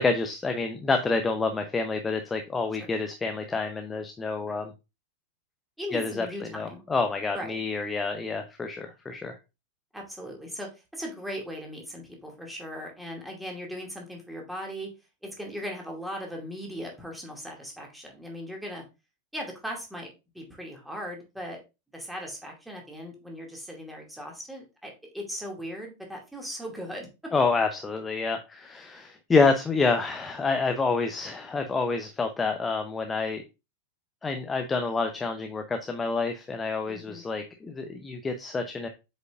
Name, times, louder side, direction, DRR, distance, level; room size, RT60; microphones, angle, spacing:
voice 1, 0.0-4.7 5.9-6.3 6.5-9.4 27.3-33.4 34.2-38.9, left 4 dB, 15° left, 6 dB, 0.7 m, -28 dB
voice 2, 5.8-6.8 7.3-7.6 8.8-8.9 9.9-14.9 15.2-18.8 19.3-21.6 21.9-27.3 36.9-37.2, equal, 5° right, 0 dB, 2.3 m, -38 dB
7.8 x 5.2 x 2.5 m, 0.26 s
figure-of-eight pair, 90°, 0 cm